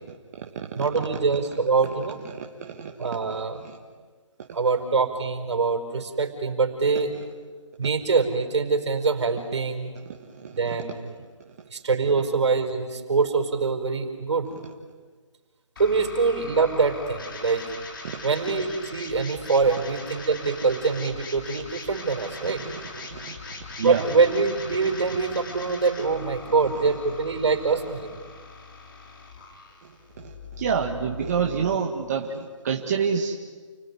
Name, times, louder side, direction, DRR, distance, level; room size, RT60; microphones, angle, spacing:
voice 1, 0.7-2.2 3.0-3.6 4.5-7.1 7.8-9.9 10.5-11.1 11.7-14.5 15.8-17.7 18.2-22.6 23.8-28.2, right 4 dB, 60° right, 5 dB, 4.9 m, -24 dB
voice 2, 2.3-3.8 10.1-10.8 18.0-18.2 22.4-23.3 23.8-24.0 29.8-29.9 30.2-33.4, right 6 dB, 30° right, 1 dB, 1.6 m, -29 dB
sound 1, 15.8-31.8, left 4 dB, 40° left, 3.9 m, -41 dB
29.5 x 19.5 x 9.7 m, 1.5 s
hypercardioid pair, 165°, 16 cm